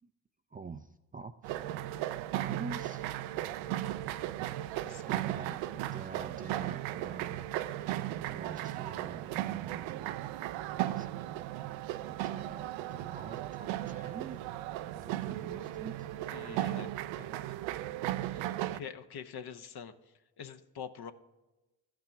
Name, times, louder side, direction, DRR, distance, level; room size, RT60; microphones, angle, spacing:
voice 1, 0.5-1.6 2.3-3.0 5.0-7.5 8.3-10.0 11.0-11.3 12.0-14.4 15.0-16.1 18.3-18.5, right 4 dB, 20° right, 7 dB, 0.4 m, -46 dB
sound 1, 1.4-18.8, right 14 dB, 70° right, 0.6 m, -36 dB
voice 2, 16.3-16.9 17.2-17.5 18.3-21.1, left 7 dB, 50° left, 8 dB, 1.0 m, -46 dB
15.0 x 5.9 x 3.4 m, 1.1 s
hypercardioid pair, 60°, 48 cm